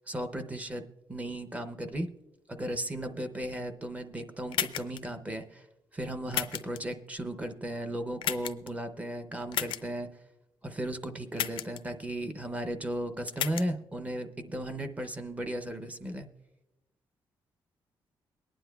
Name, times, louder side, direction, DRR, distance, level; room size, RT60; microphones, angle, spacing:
voice 1, 0.1-2.1 2.5-5.7 5.9-10.1 10.6-16.3, right 1 dB, 15° right, 8 dB, 0.6 m, -35 dB
sound 1, 4.5-5.0 6.3-6.8 8.2-8.7 9.5-9.8 11.3-11.8 13.3-13.6, left 11 dB, 85° left, 0.5 m, -32 dB
23.0 x 10.0 x 2.3 m, 0.98 s
wide cardioid pair, 155°, 9 cm